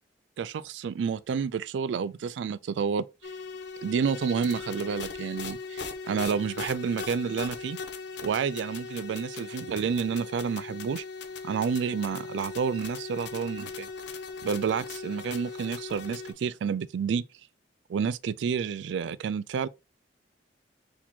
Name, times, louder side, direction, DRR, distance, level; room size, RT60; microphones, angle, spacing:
voice 1, 0.4-3.1 3.8-7.8 8.2-11.0 11.4-13.9 14.4-17.2 17.9-19.7, right 6 dB, 70° right, 0.3 m, -29 dB
sound 1, 3.2-16.3, left 4 dB, 65° left, 0.6 m, -39 dB
4.2 x 2.9 x 4.2 m
head